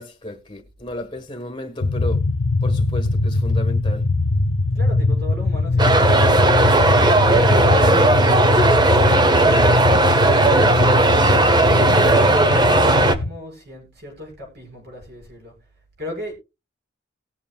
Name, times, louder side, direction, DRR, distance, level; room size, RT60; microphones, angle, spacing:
voice 1, 0.0-2.2 2.6-4.0, left 1 dB, 25° left, 1.3 m, -33 dB
sound 1, 1.8-13.3, left 2 dB, 90° left, 0.6 m, -20 dB
voice 2, 4.7-10.3 10.8-15.7 16.0-16.3, equal, 60° right, 5.4 m, -37 dB
sound 2, 5.8-13.1, right 2 dB, 20° right, 0.8 m, -16 dB
19.0 x 7.2 x 2.3 m
head